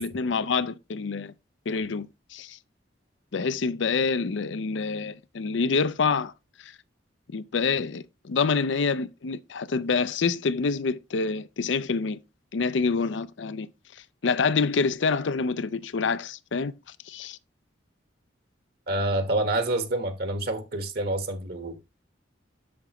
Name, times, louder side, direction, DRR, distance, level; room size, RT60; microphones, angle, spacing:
voice 1, 0.0-1.3 1.7-2.6 3.3-6.3 6.6-6.7 7.3-12.2 12.5-13.7 14.2-16.7 17.1-17.4, left 4 dB, 75° left, 0.5 m, -27 dB
voice 2, 18.9-21.8, right 2 dB, 55° right, 1.3 m, -27 dB
8.5 x 6.9 x 3.0 m
head